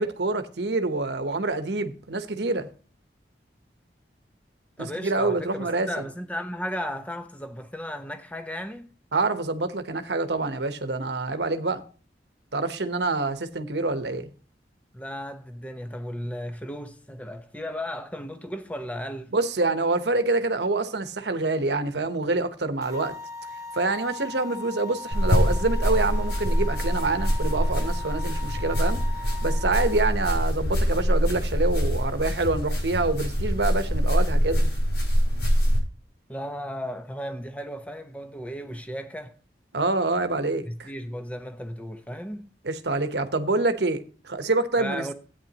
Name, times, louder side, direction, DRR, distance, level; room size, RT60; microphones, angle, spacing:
voice 1, 0.0-2.7 4.8-5.9 9.1-11.8 12.5-14.3 19.3-23.1 23.7-29.0 29.4-34.7 39.7-40.9 42.6-45.1, right 3 dB, 75° right, 1.0 m, -26 dB
voice 2, 4.8-8.9 14.9-19.3 36.3-39.3 40.6-42.5 44.8-45.1, equal, 10° left, 0.9 m, -35 dB
sound 1, 22.8-30.0, left 3 dB, 20° right, 1.6 m, -39 dB
sound 2, 25.1-35.8, equal, 85° left, 6.2 m, -24 dB
14.0 x 9.2 x 2.9 m
head